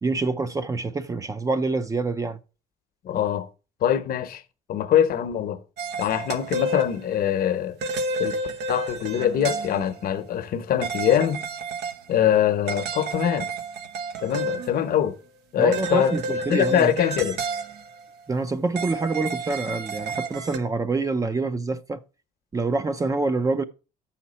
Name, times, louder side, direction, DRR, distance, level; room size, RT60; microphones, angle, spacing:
voice 1, 0.0-2.4 15.6-16.9 18.3-22.0 22.5-23.6, right 3 dB, 20° right, 0.5 m, -26 dB
voice 2, 3.0-3.5 3.8-4.4 4.7-5.6 6.0-7.8 8.2-8.4 8.7-11.4 12.1-13.5 14.2-15.2 15.5-16.2 16.5-17.4, left 10 dB, 60° left, 0.8 m, -23 dB
sound 1, 5.8-7.3 7.8-10.0 10.8-12.0 12.3-12.4 12.7-15.1 15.7-18.1 18.8-20.6, right 2 dB, 80° right, 0.9 m, -31 dB
7.2 x 5.8 x 4.1 m
cardioid pair, 110°, 17 cm